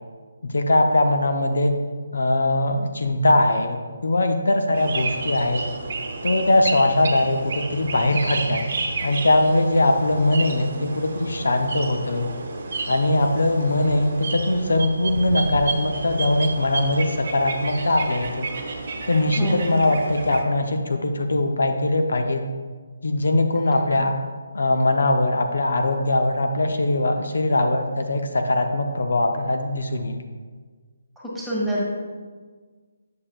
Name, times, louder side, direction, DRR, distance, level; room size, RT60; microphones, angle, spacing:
voice 1, 0.4-1.7 2.1-5.7 6.2-8.6 9.0-12.3 12.9-18.5 19.1-22.4 23.0-24.2 24.5-30.2, left 2 dB, 65° left, 5 dB, 0.6 m, -21 dB
sound 1, 4.7-20.4, right 3 dB, 50° right, 0.9 m, -31 dB
voice 2, 19.3-19.9 23.9-24.0 31.2-31.8, equal, 5° right, -6 dB, 1.6 m, -27 dB
8.4 x 6.5 x 2.3 m, 1.5 s
figure-of-eight pair, 145°, 0 cm